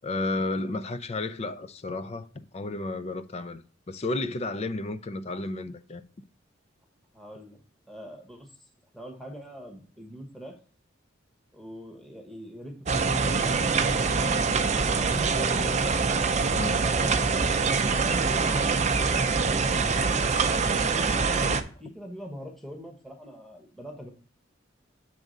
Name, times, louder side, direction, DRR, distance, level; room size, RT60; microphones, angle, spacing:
voice 1, 0.0-6.0 16.5-16.9 21.4-21.6, left 2 dB, 35° left, 0.4 m, -32 dB
voice 2, 7.1-7.6 7.9-8.5 8.9-10.5 11.5-14.3 16.8-17.5 18.0-18.6 19.1-20.3 21.1-21.4 21.8-24.1, equal, ahead, 1.1 m, -43 dB
sound 1, 12.9-21.6, right 4 dB, 35° right, 0.5 m, -24 dB
7.7 x 3.6 x 5.1 m
head